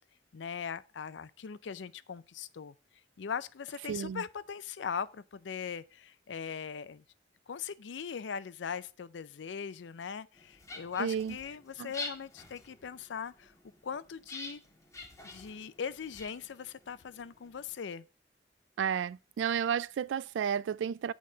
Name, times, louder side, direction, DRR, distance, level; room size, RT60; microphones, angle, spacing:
voice 1, 0.3-2.7 3.2-7.0 7.5-13.5 13.8-14.6 15.2-18.0, left 6 dB, 80° left, 0.5 m, -40 dB
voice 2, 3.9-4.2 11.0-11.4 11.8-11.9 18.8-21.1, right 8 dB, 90° right, 0.3 m, -32 dB
sound 1, 10.3-17.7, left 3 dB, 20° left, 1.6 m, -47 dB
8.5 x 4.1 x 4.9 m
head